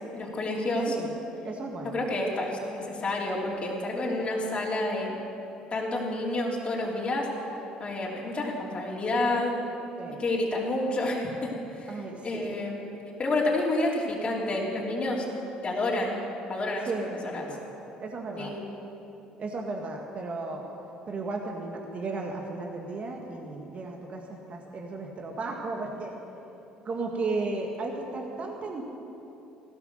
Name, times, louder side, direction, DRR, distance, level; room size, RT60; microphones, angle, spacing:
voice 1, 0.1-0.9 1.9-5.2 5.7-7.3 7.8-9.5 10.2-11.5 11.7-12.9 13.2-15.2 15.6-16.2 16.5-16.9 17.3-17.5 18.4-18.6, left 2 dB, 35° left, -4 dB, 3.2 m, -29 dB
voice 2, 1.4-2.1 10.0-10.2 11.9-12.6 16.9-17.6 18.0-18.6 19.4-20.6 21.1-26.2 26.8-28.8, right 3 dB, 45° right, 1 dB, 1.8 m, -34 dB
15.5 x 13.0 x 6.7 m, 3.0 s
hypercardioid pair, 70°, 3 cm